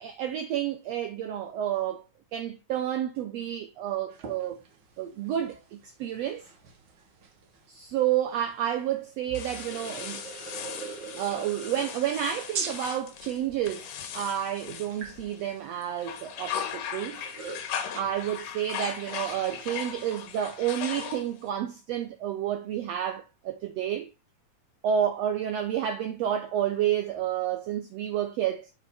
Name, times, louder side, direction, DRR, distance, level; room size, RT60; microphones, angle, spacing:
voice 1, 0.0-2.0 2.3-4.6 5.0-6.5 7.7-10.2 11.1-17.2 17.9-24.1 24.8-28.7, right 10 dB, 85° right, 1.4 m, -30 dB
sound 1, 4.1-20.5, right 5 dB, 60° right, 1.2 m, -44 dB
sound 2, 9.3-15.5 15.9-21.5, left 8 dB, 80° left, 2.7 m, -38 dB
7.1 x 5.2 x 4.2 m
omnidirectional pair, 3.7 m